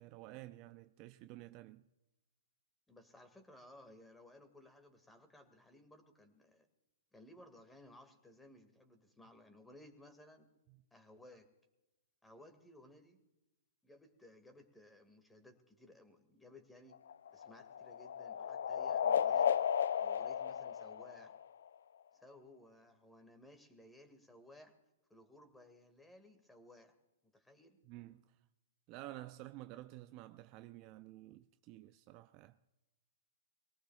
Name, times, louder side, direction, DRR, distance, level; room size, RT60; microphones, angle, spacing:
voice 1, 0.0-1.8 27.8-28.4 28.9-32.6, right 16 dB, 35° right, 0.5 m, -51 dB
voice 2, 2.9-6.7 7.1-10.5 10.9-11.5 12.2-13.2 13.8-17.0 17.3-19.6 20.0-21.4 22.1-24.8 25.1-27.0 27.3-27.8, left 1 dB, 5° left, 2.0 m, -59 dB
sound 1, 16.9-21.7, left 8 dB, 70° left, 0.4 m, -34 dB
23.5 x 18.0 x 2.4 m
hypercardioid pair, 125°, 0 cm